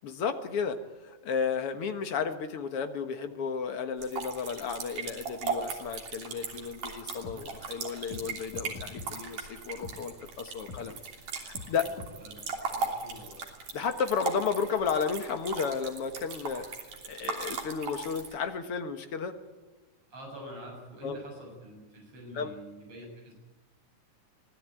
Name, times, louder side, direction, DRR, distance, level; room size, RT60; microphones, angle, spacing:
voice 1, 0.0-11.0 11.3-11.9 13.7-16.7 17.0-19.4 21.0-21.2 22.3-22.5, left 6 dB, 55° left, 8 dB, 2.1 m, -33 dB
sound 1, 4.0-18.3, right 4 dB, 80° right, 4.6 m, -38 dB
sound 2, 6.5-6.6 7.2-7.4 8.1-8.2 8.5-9.1 9.8-10.0 10.7-10.8 11.5-11.7 12.0-12.1, left 4 dB, 80° left, 3.6 m, -42 dB
voice 2, 11.5-13.4 16.5-16.8 20.1-23.3, equal, 45° right, 0 dB, 8.5 m, -47 dB
24.5 x 17.0 x 9.0 m, 1.2 s
omnidirectional pair, 3.5 m